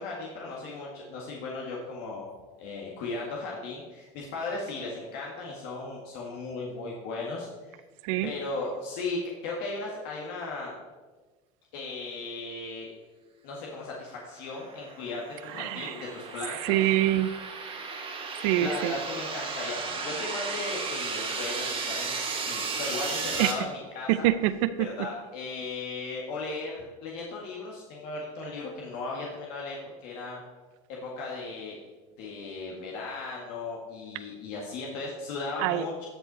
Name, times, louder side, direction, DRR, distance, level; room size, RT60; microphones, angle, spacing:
voice 1, 0.0-2.3 2.6-7.8 8.2-10.7 11.7-12.9 13.4-16.8 18.3-24.3 24.8-29.8 30.0-30.4 30.9-31.8 32.2-36.1, left 3 dB, 70° left, -2 dB, 1.8 m, -36 dB
sound 1, 14.5-23.5, right 4 dB, 35° right, 2.0 m, -34 dB
voice 2, 15.5-16.1 16.5-17.3 18.4-19.0 23.4-23.5 24.1-24.9 35.6-35.8, right 14 dB, 75° right, 14 dB, 0.5 m, -25 dB
13.0 x 5.6 x 4.2 m, 1.3 s
supercardioid pair, 110°, 17 cm